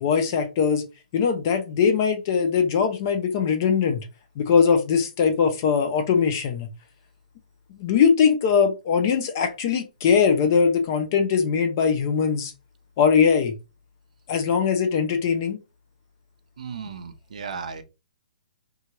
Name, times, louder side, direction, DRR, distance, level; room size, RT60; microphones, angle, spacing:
voice 1, 0.0-0.8 1.1-4.0 4.4-6.7 7.8-12.5 13.0-13.5 14.3-15.6, left 6 dB, 20° left, 0.3 m, -21 dB
voice 2, 16.6-17.8, right 6 dB, 55° right, 0.6 m, -35 dB
2.9 x 2.3 x 2.8 m
hypercardioid pair, 175°, 5 cm